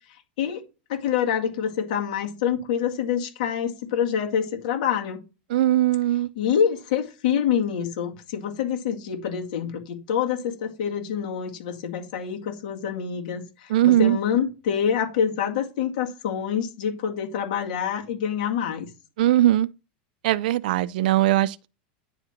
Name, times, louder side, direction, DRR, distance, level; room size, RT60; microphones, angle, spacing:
voice 1, 0.1-0.6 0.9-5.2 6.4-18.9, left 8 dB, 55° left, 2.0 m, -26 dB
voice 2, 5.5-6.3 13.7-14.2 19.2-19.7 20.2-21.7, right 14 dB, 60° right, 0.4 m, -20 dB
9.9 x 4.4 x 3.7 m
supercardioid pair, 180°, 5 cm